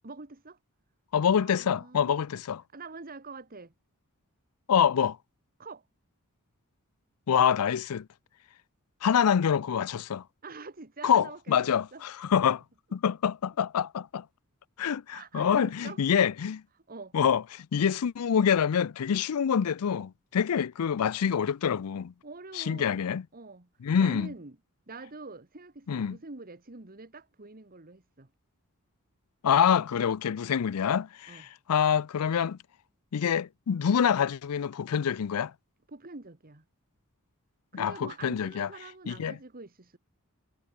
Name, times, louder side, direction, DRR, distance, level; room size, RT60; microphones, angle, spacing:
voice 1, 0.0-0.6 1.2-2.2 2.7-3.7 5.6-5.8 10.4-12.0 13.0-13.1 15.1-16.0 16.9-17.1 22.2-23.1 23.3-23.7 24.0-24.6 24.9-28.3 31.3-31.5 35.9-36.6 37.7-40.0, right 3 dB, 40° right, 1.6 m, -45 dB
voice 2, 1.1-2.6 4.7-5.2 7.3-8.1 9.0-10.2 11.0-12.6 12.9-14.2 14.8-16.6 17.1-22.1 22.6-23.2 23.8-24.3 25.9-26.2 29.4-32.6 33.1-35.5 37.7-38.7 39.1-39.3, left 7 dB, 85° left, 0.4 m, -26 dB
head